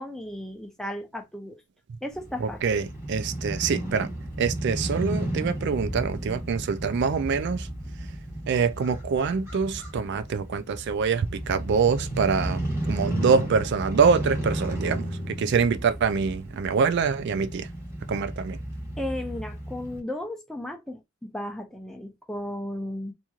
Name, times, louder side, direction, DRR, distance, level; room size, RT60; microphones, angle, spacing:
voice 1, 0.0-1.6 2.0-2.6 19.0-21.0 21.3-23.1, left 1 dB, ahead, 0.5 m, -34 dB
Crow / Motorcycle, 2.1-20.0, right 1 dB, 15° right, 1.1 m, -33 dB
voice 2, 2.4-4.1 4.4-7.7 8.5-17.7 18.1-18.6, right 5 dB, 55° right, 0.3 m, -25 dB
2.9 x 2.6 x 2.3 m
head